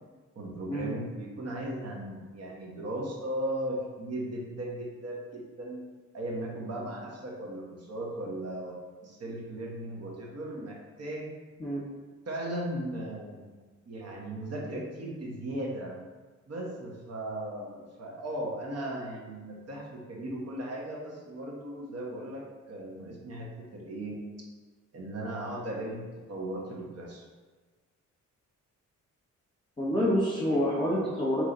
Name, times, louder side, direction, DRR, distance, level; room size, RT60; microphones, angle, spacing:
voice 1, 0.3-5.8 6.1-8.7 9.0-11.3 12.3-13.5 13.9-15.9 16.5-24.2 24.9-27.3, right 1 dB, 50° right, -2 dB, 1.1 m, -37 dB
voice 2, 29.8-31.4, equal, 15° left, -7 dB, 1.2 m, -27 dB
3.7 x 3.1 x 3.9 m, 1.3 s
cardioid pair, 70°, 31 cm